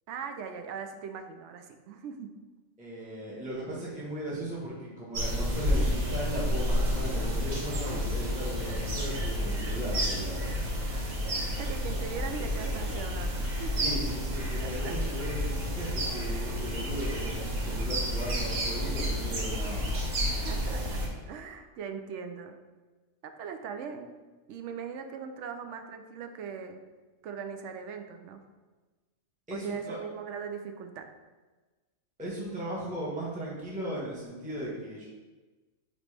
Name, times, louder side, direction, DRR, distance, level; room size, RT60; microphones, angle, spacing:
voice 1, 0.1-2.3 11.6-13.9 14.6-15.0 20.2-22.6 23.2-24.1 24.5-26.8 27.2-28.4 29.5-31.1, right 6 dB, 65° right, 6 dB, 0.8 m, -40 dB
voice 2, 2.8-10.7 13.8-20.2 29.5-30.0 32.2-35.0, right 1 dB, 5° right, -6 dB, 1.1 m, -37 dB
sound 1, 5.1-21.1, equal, 90° right, 1.6 m, -30 dB
9.0 x 3.1 x 3.3 m, 1.3 s
omnidirectional pair, 1.4 m